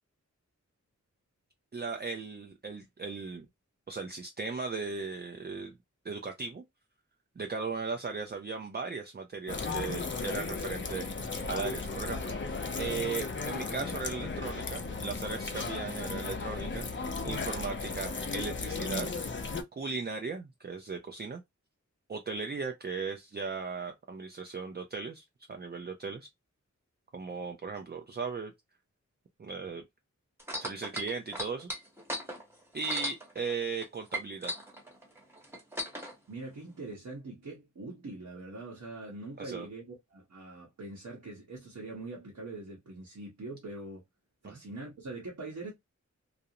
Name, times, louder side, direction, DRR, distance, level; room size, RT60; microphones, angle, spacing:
voice 1, 1.7-3.5 3.9-5.7 6.0-6.6 7.4-12.3 12.8-19.1 19.8-21.4 22.1-26.3 27.1-28.5 29.4-29.8 30.6-31.7 32.7-34.5 39.4-39.7 44.4-44.6, right 4 dB, 35° right, 0.4 m, -37 dB
sound 1, 9.5-19.6, left 4 dB, 40° left, 0.5 m, -35 dB
sound 2, 30.4-33.8 34.1-36.1 36.9-37.0, equal, 10° right, 1.0 m, -37 dB
voice 2, 36.3-44.0 44.4-45.7, right 2 dB, 70° right, 0.9 m, -43 dB
2.5 x 2.0 x 2.7 m
wide cardioid pair, 50°, 30 cm